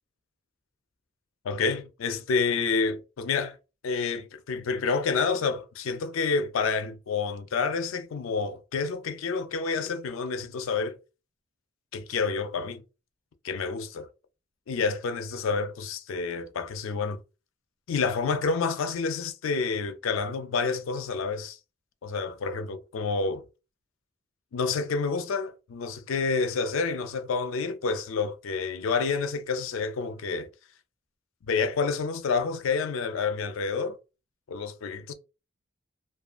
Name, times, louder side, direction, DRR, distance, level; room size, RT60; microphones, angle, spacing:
voice 1, 1.4-3.6 3.8-11.0 11.9-12.8 13.4-14.1 14.7-17.2 17.9-21.6 22.0-23.4 24.5-30.5 31.5-34.0 34.5-35.1, left 4 dB, 80° left, 0.4 m, -29 dB
2.4 x 2.3 x 2.4 m
head